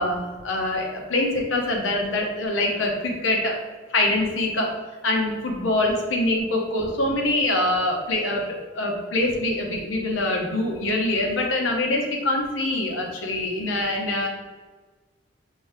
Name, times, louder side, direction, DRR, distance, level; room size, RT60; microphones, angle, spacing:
voice 1, 0.0-3.6 3.9-4.7 5.0-8.4 8.7-14.3, left 2 dB, 75° left, 0 dB, 0.9 m, -24 dB
5.2 x 2.7 x 3.3 m, 1.3 s
head